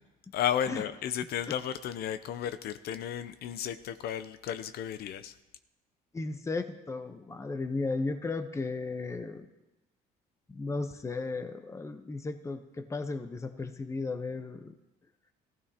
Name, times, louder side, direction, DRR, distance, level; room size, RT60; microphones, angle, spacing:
voice 1, 0.3-5.3, left 9 dB, 70° left, 11 dB, 0.6 m, -33 dB
voice 2, 6.1-9.5 10.5-14.7, left 3 dB, 15° left, 8 dB, 0.8 m, -35 dB
16.5 x 15.5 x 2.8 m, 1.0 s
cardioid pair, 110°, 17 cm